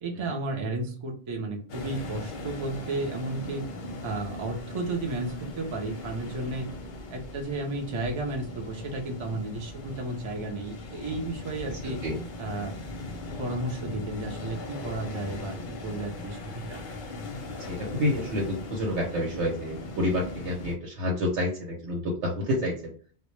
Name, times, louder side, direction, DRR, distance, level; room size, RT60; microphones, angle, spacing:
voice 1, 0.0-3.7 4.0-6.7 7.1-12.0 12.4-12.7 13.4-16.8, right 2 dB, 45° right, 2 dB, 0.4 m, -33 dB
sound 1, 1.7-20.8, left 2 dB, 55° left, 0.6 m, -39 dB
voice 2, 11.8-12.2 17.7-22.9, left 1 dB, 85° right, -1 dB, 0.9 m, -29 dB
2.1 x 2.0 x 3.0 m, 0.42 s
omnidirectional pair, 1.2 m